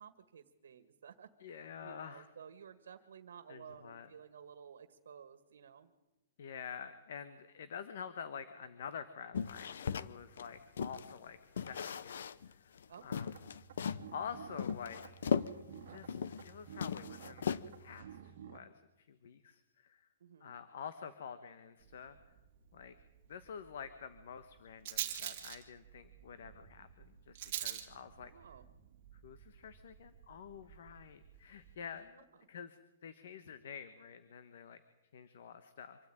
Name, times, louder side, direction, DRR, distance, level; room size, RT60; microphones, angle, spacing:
voice 1, 0.0-5.9 12.9-13.4 20.2-20.5 28.1-28.6, right 7 dB, 80° right, 9 dB, 1.7 m, -54 dB
voice 2, 1.4-2.3 3.5-4.1 6.4-13.4 14.1-15.2 15.9-20.1 20.4-22.2 22.7-22.9 23.3-28.3 29.2-34.8 35.1-36.0, left 7 dB, 55° left, 11 dB, 1.2 m, -48 dB
sound 1, 9.3-11.1 11.6-12.5 12.8-12.9 13.1-14.1 14.6-16.5 16.8-17.9, left 7 dB, 70° left, 0.8 m, -37 dB
sound 2, 13.3-18.6, right 9 dB, 50° right, 2.0 m, -53 dB
Rattle, 21.8-31.7, right 11 dB, 35° right, 2.3 m, -47 dB
25.5 x 13.5 x 9.0 m, 1.0 s
hypercardioid pair, 180°, 0 cm